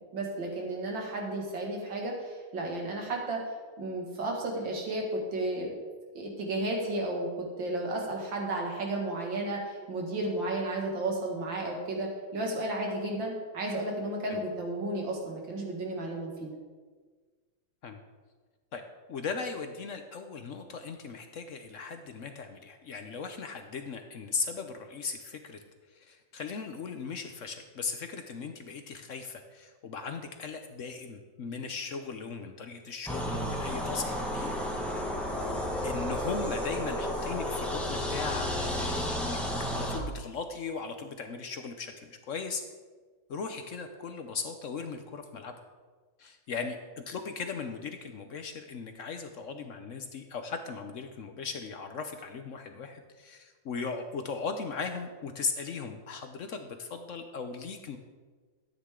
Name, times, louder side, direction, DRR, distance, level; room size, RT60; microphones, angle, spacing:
voice 1, 0.1-3.4 3.8-5.7 6.1-16.5, right 2 dB, 85° right, 0 dB, 2.7 m, -33 dB
voice 2, 19.1-25.6 25.9-34.6 35.8-42.6 43.3-45.5 46.2-46.8 47.1-58.0, left 5 dB, 60° left, 7 dB, 0.8 m, -38 dB
sound 1, 33.1-40.0, equal, ahead, 1.3 m, -32 dB
13.0 x 9.6 x 3.7 m, 1.4 s
omnidirectional pair, 2.0 m